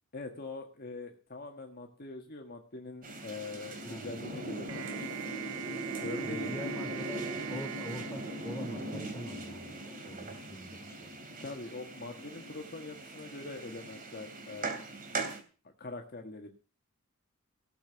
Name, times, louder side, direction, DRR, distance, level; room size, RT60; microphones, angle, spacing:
voice 1, 0.1-5.2 6.0-6.6 11.4-14.8 15.6-16.5, left 3 dB, 50° left, 3 dB, 1.6 m, -43 dB
sound 1, 3.0-15.4, right 2 dB, 45° right, 3.0 m, -40 dB
voice 2, 3.8-4.1 6.2-11.2, equal, 15° left, 4 dB, 3.0 m, -44 dB
sound 2, 4.7-9.2, right 11 dB, 70° right, 0.6 m, -43 dB
17.5 x 6.9 x 7.0 m, 0.37 s
head